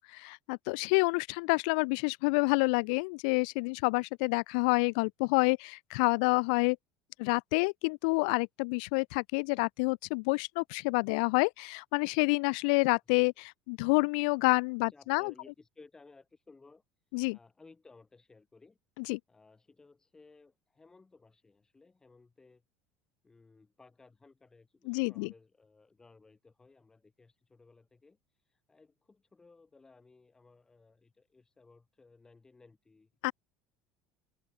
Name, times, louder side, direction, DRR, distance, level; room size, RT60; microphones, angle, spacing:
voice 1, 0.0-6.8 7.2-15.3 17.1-17.4 19.0-19.2 24.9-25.3 33.2-33.3, left 32 dB, 80° left, 1.0 m, -28 dB
voice 2, 14.8-16.8 17.3-18.8 19.3-22.6 23.2-33.1, left 3 dB, 15° left, 7.1 m, -59 dB
cardioid pair, 130°, 4 cm